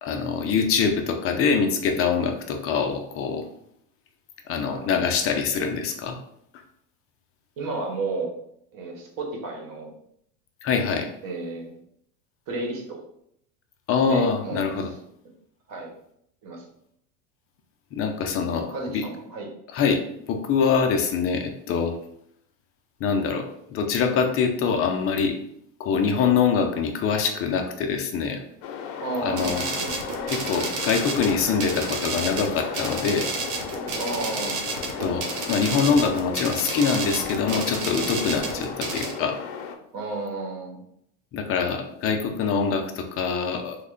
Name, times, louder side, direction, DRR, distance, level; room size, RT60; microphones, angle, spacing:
voice 1, 0.0-3.5 4.5-6.2 10.6-11.1 13.9-14.9 17.9-19.0 19.7-20.0 20.3-21.9 23.0-25.4 25.8-28.4 29.2-29.7 30.3-33.3 35.0-39.4 41.3-43.8, left 6 dB, 30° left, 4 dB, 0.4 m, -24 dB
voice 2, 4.7-5.2 7.6-8.3 8.7-9.9 11.2-11.7 12.5-13.0 14.0-14.7 15.7-15.9 16.4-16.6 18.7-19.5 29.0-29.9 34.0-34.7 39.9-40.8 42.3-42.4, right 3 dB, 45° right, 1 dB, 1.1 m, -32 dB
sound 1, 28.6-39.8, left 6 dB, 75° left, 0.6 m, -35 dB
sound 2, 29.4-39.1, right 4 dB, 75° right, 1.0 m, -31 dB
3.2 x 2.1 x 3.7 m, 0.72 s
supercardioid pair, 120°, 46 cm